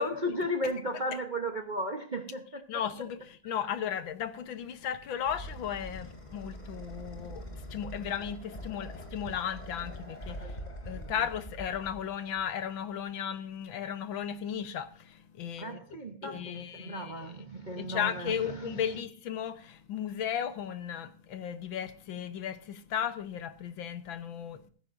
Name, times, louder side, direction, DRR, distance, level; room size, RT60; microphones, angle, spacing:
voice 1, 0.0-2.8 10.4-10.5 11.0-11.1 15.6-19.0, equal, 40° right, 0.7 m, -35 dB
voice 2, 2.7-10.4 10.8-15.8 16.2-17.3 17.8-24.7, left 9 dB, 70° left, 1.7 m, -35 dB
sound 1, 4.6-12.6, equal, 20° left, 2.9 m, -44 dB
15.0 x 14.5 x 2.6 m
omnidirectional pair, 2.2 m